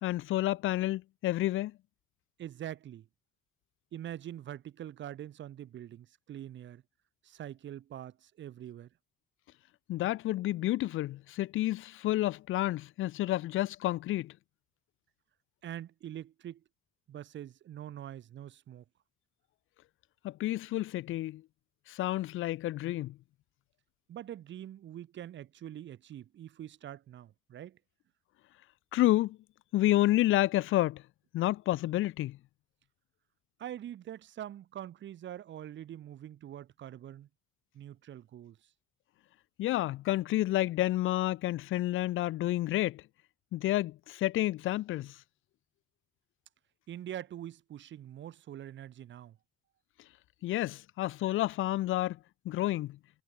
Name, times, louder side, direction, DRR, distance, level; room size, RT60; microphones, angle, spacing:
voice 1, 0.0-1.7 9.9-14.3 20.2-21.4 21.9-23.1 28.9-29.4 29.7-31.0 31.3-32.4 39.6-43.0 43.5-45.2 50.4-52.2 52.4-53.0, left 15 dB, 85° left, 1.4 m, -30 dB
voice 2, 2.4-3.1 3.9-6.8 7.2-8.9 15.6-16.6 17.1-18.8 24.1-27.8 33.6-37.3 37.7-38.6 46.9-49.4, right 11 dB, 70° right, 2.2 m, -44 dB
cardioid pair, 90°, 20 cm